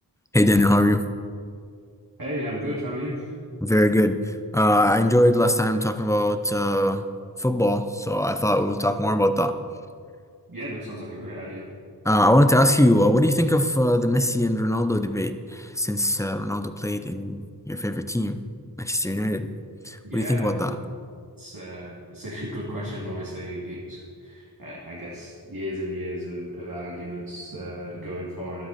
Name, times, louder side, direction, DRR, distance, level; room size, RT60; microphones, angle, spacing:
voice 1, 0.3-1.0 3.6-7.1 7.4-9.5 12.0-17.4 17.7-18.4 18.8-19.5 19.9-20.8, left 1 dB, 5° left, 9 dB, 0.8 m, -21 dB
voice 2, 2.2-3.6 10.5-11.6 20.0-20.9 21.4-28.7, equal, 55° right, -6 dB, 2.5 m, -34 dB
13.0 x 11.5 x 4.3 m, 2.2 s
wide cardioid pair, 55°, 41 cm